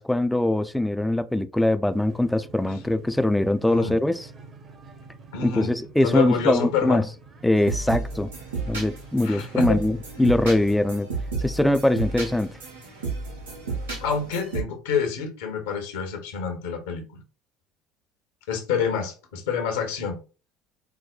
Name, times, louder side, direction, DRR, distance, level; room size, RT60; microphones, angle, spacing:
voice 1, 0.0-4.3 5.4-7.0 7.4-8.3 8.7-11.1 11.4-12.5, left 1 dB, 5° left, 0.3 m, -22 dB
sound 1, 1.9-14.1, right 3 dB, 45° right, 0.9 m, -48 dB
voice 2, 3.6-3.9 5.3-5.7 6.0-7.0 9.2-9.8 14.0-17.2 18.5-20.2, left 6 dB, 80° left, 0.9 m, -27 dB
sound 2, 7.6-14.6, right 4 dB, 90° right, 1.1 m, -32 dB
4.7 x 2.1 x 2.3 m
hypercardioid pair, 75°, 0 cm